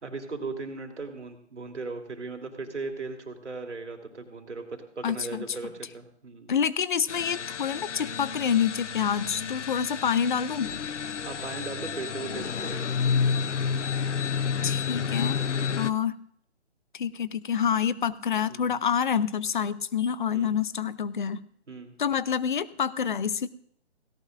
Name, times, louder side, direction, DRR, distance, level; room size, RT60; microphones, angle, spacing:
voice 1, 0.0-6.5 11.2-12.9 15.4-16.0 18.5-18.8 20.3-20.6 21.7-21.9, right 3 dB, 90° right, 4 dB, 3.2 m, -38 dB
voice 2, 5.0-5.4 6.5-10.7 14.6-15.4 15.8-16.2 16.9-21.4 22.0-23.5, left 7 dB, 45° left, 17 dB, 0.7 m, -27 dB
sound 1, 7.1-15.9, left 6 dB, 90° left, 0.8 m, -30 dB
17.5 x 17.5 x 2.5 m, 0.65 s
hypercardioid pair, 160°, 35 cm